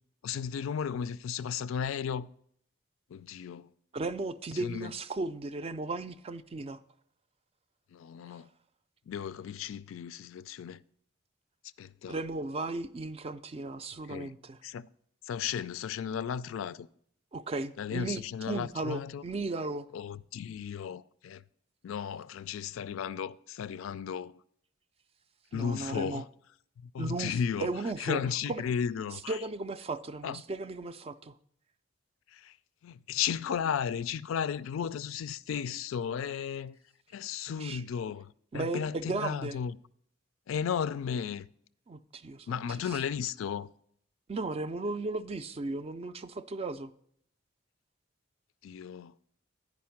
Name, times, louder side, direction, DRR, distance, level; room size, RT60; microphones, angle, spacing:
voice 1, 0.2-2.3 3.1-3.7 4.6-4.9 7.9-8.5 9.1-10.8 11.8-12.2 14.1-14.3 14.6-14.9 15.2-16.9 17.8-19.2 19.9-21.4 21.8-24.3 25.5-26.3 26.9-27.7 28.0-29.4 30.2-30.4 32.3-32.5 32.8-36.8 37.1-39.8 40.5-41.5 42.5-43.7 48.6-49.1, left 7 dB, 80° left, 0.3 m, -34 dB
voice 2, 3.9-6.8 12.1-14.6 17.3-18.2 18.5-19.9 25.5-26.2 27.0-28.2 28.5-28.6 29.1-31.3 37.5-37.8 38.5-39.6 41.9-43.0 44.3-46.9, right 3 dB, 30° right, 0.3 m, -36 dB
9.4 x 5.1 x 5.7 m
head